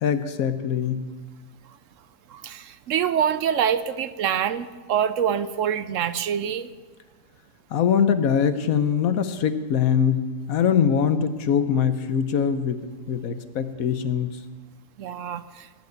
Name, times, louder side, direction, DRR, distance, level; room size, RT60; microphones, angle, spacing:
voice 1, 0.0-1.0 7.7-14.4, left 7 dB, 75° left, 11 dB, 1.3 m, -23 dB
voice 2, 2.3-6.7 15.0-15.7, right 8 dB, 70° right, 13 dB, 0.9 m, -25 dB
18.5 x 6.3 x 8.4 m, 1.3 s
omnidirectional pair, 1.5 m